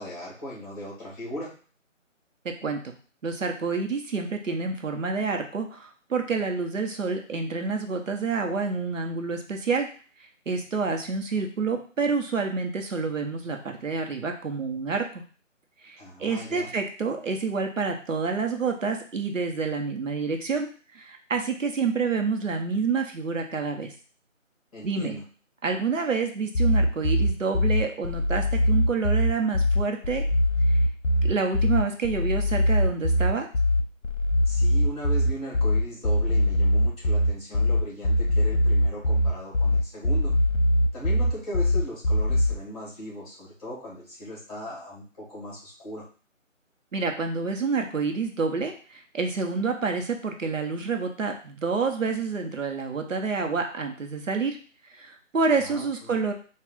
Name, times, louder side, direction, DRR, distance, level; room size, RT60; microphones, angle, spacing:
voice 1, 0.0-1.5 16.0-16.7 24.7-25.2 34.4-40.3 40.9-46.0 55.6-56.2, equal, 30° left, -5 dB, 1.7 m, -38 dB
voice 2, 2.4-2.9 3.2-9.9 10.5-15.2 15.8-20.7 20.9-23.9 24.8-25.2 25.6-30.2 31.2-33.5 46.9-54.6 54.9-56.3, right 4 dB, 70° right, 4 dB, 0.9 m, -28 dB
sound 1, 26.5-42.5, left 1 dB, 70° left, 0.9 m, -22 dB
3.6 x 2.3 x 3.6 m, 0.40 s
figure-of-eight pair, 170°, 39 cm